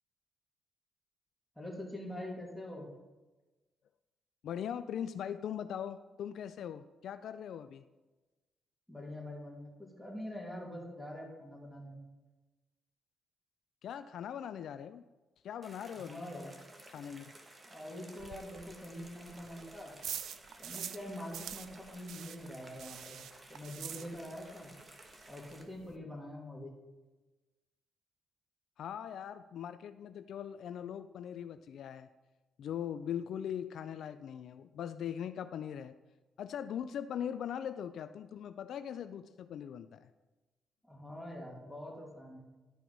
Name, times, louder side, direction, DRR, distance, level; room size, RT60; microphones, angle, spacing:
voice 1, 1.6-2.9 8.9-11.9 15.9-16.5 17.6-19.9 20.6-23.2 23.5-24.7 25.3-26.7 40.9-42.4, left 1 dB, ahead, -3 dB, 2.4 m, -44 dB
voice 2, 4.4-7.8 13.8-15.0 15.4-16.2 16.9-17.3 28.8-32.1 32.6-35.9 36.4-40.1, left 9 dB, 70° left, 11 dB, 0.3 m, -40 dB
sound 1, 15.6-25.6, right 1 dB, 25° right, 1.2 m, -55 dB
sound 2, 18.2-21.1 21.3-24.5 24.8-24.9 25.2-25.3 25.5-26.0, right 9 dB, 70° right, 0.4 m, -45 dB
11.5 x 4.6 x 4.0 m, 1.1 s
cardioid pair, 90°, 0 cm